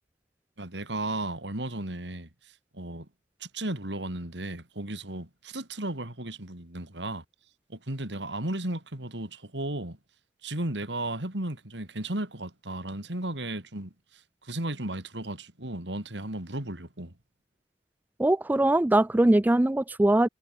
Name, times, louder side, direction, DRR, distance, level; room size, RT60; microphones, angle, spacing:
voice 1, 0.6-2.3 2.7-3.1 3.4-7.2 7.7-10.0 10.4-13.9 14.4-17.1, right 1 dB, 80° right, 4.0 m, -34 dB
voice 2, 18.2-20.3, right 1 dB, 10° right, 0.3 m, -21 dB
head